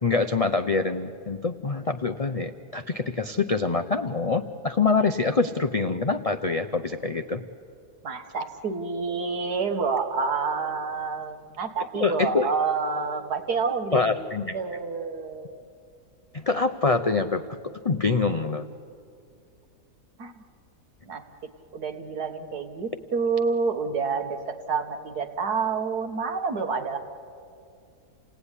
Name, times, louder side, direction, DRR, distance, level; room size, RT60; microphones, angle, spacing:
voice 1, 0.0-7.4 11.9-12.5 13.9-14.6 16.3-18.7, left 4 dB, 60° left, 6 dB, 0.3 m, -25 dB
voice 2, 8.0-14.3 14.5-15.6 20.2-20.3 21.1-21.2 21.7-27.0, right 5 dB, 75° right, 5 dB, 2.1 m, -28 dB
29.0 x 18.0 x 9.9 m, 2.4 s
omnidirectional pair, 1.7 m